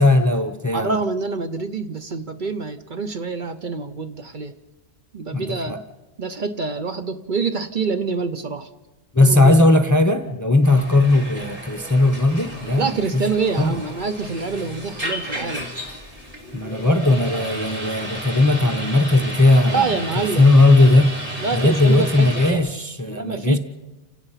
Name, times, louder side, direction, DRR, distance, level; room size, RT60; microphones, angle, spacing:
voice 1, 0.0-1.0 5.3-5.8 9.1-13.2 13.6-13.7 16.5-19.9 20.2-21.1 21.5-23.6, left 2 dB, 20° left, 0.8 m, -17 dB
voice 2, 0.7-4.6 5.1-5.8 6.2-8.7 9.2-9.5 12.8-15.7 19.7-20.5 21.4-22.7 23.1-23.6, right 4 dB, 50° right, 0.9 m, -26 dB
sound 1, 10.6-22.5, right 1 dB, 30° right, 3.1 m, -33 dB
29.0 x 17.0 x 5.7 m
omnidirectional pair, 1.1 m